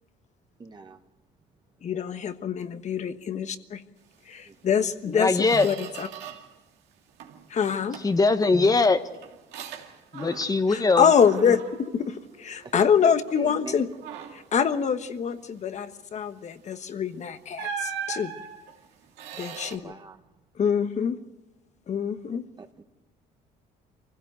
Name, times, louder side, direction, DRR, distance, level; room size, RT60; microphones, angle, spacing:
voice 1, 0.6-1.0 4.4-4.6 5.5-5.7 8.5-8.7 12.6-12.7 13.4-13.8 19.6-20.2 22.6-22.8, right 4 dB, 25° right, 6 dB, 1.5 m, -41 dB
voice 2, 1.8-3.8 4.3-6.1 7.5-8.0 10.7-13.9 14.3-18.3 19.4-19.9 20.6-21.2 21.9-22.4, left 7 dB, 45° left, 10 dB, 1.3 m, -25 dB
Squeak, 4.7-4.8 5.2-6.6 6.9-7.5 7.9-10.7 11.0-12.9 13.3-13.5 13.9-14.6 16.7-16.9 17.6-19.8, right 7 dB, 90° right, 2.5 m, -39 dB
voice 3, 5.1-5.6 8.0-9.0 10.1-11.1, left 3 dB, 20° left, 10 dB, 1.3 m, -21 dB
24.5 x 16.0 x 8.1 m, 1.0 s
cardioid pair, 110°, 17 cm